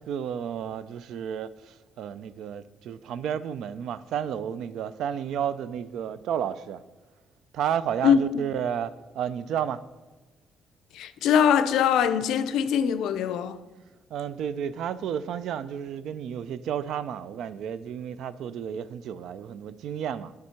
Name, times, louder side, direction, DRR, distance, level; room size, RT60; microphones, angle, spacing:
voice 1, 0.0-6.8 7.5-9.8 14.1-20.3, right 9 dB, 80° right, 0.3 m, -32 dB
voice 2, 10.9-13.6, left 8 dB, 85° left, 0.4 m, -22 dB
9.3 x 3.5 x 5.7 m
cardioid pair, 90°, 0 cm